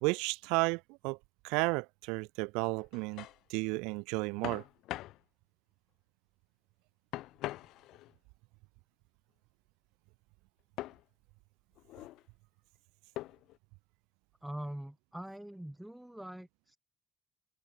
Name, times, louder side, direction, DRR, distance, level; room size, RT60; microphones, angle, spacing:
voice 1, 0.0-1.2 1.4-4.6, right 28 dB, 80° right, 1.0 m, -33 dB
sound 1, 2.8-3.4 4.4-5.2 7.1-8.1 10.8-11.0 11.8-12.2 13.2-13.6, left 16 dB, 75° left, 4.8 m, -42 dB
voice 2, 14.4-16.8, right 1 dB, 5° right, 3.2 m, -43 dB
hypercardioid pair, 55°, 0 cm